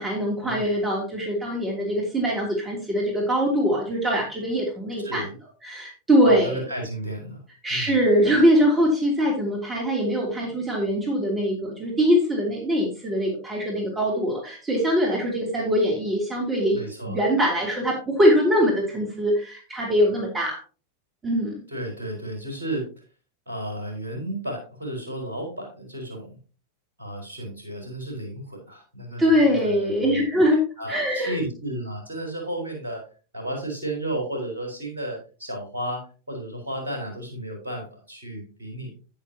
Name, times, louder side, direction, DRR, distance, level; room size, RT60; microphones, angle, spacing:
voice 1, 0.0-5.2 5.6-6.6 7.6-20.6 21.2-21.5 29.2-30.6 30.9-31.4, equal, 15° right, -1 dB, 2.9 m, -22 dB
voice 2, 6.2-7.4 7.7-8.0 16.7-17.2 21.7-22.9 23.5-26.4 27.0-30.2 30.8-33.1 33.3-38.9, right 1 dB, 70° right, 1 dB, 4.5 m, -33 dB
10.5 x 9.4 x 2.8 m, 0.35 s
figure-of-eight pair, 90°, 0 cm